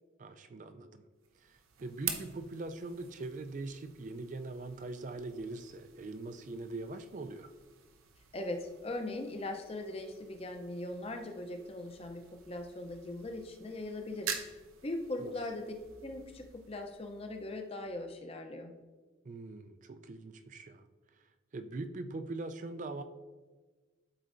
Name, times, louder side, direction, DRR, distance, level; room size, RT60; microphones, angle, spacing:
voice 1, 0.2-1.0 1.4-7.5 15.2-15.3 19.2-20.9 21.2-21.3 21.5-23.0, right 2 dB, 40° right, 9 dB, 0.3 m, -42 dB
sound 1, 1.2-18.1, right 8 dB, 90° right, 0.7 m, -47 dB
voice 2, 8.3-14.6 14.8-15.7 16.0-18.7, left 2 dB, 30° left, 4 dB, 0.5 m, -40 dB
11.5 x 4.3 x 2.5 m, 1.3 s
head